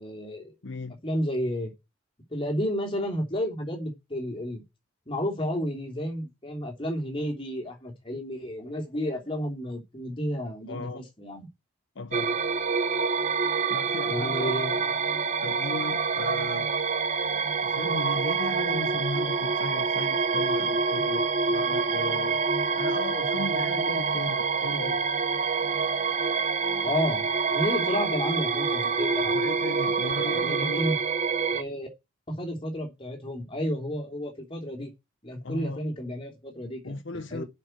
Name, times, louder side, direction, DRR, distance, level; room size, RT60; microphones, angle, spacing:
voice 1, 0.0-0.5 1.0-1.7 2.3-4.6 5.1-11.5 14.1-14.8 26.8-27.2 27.5-29.5 30.2-30.9 31.5-31.9 32.3-34.9 35.2-37.4, equal, 25° left, 3.1 m, -31 dB
voice 2, 0.6-1.0 10.7-11.0 12.0-12.4 13.7-14.7 15.4-16.7 17.6-25.0 29.3-30.9 35.4-35.8 36.8-37.4, left 3 dB, 65° left, 0.8 m, -36 dB
sound 1, 12.1-31.6, right 5 dB, 35° right, 0.7 m, -26 dB
7.7 x 6.1 x 7.8 m
head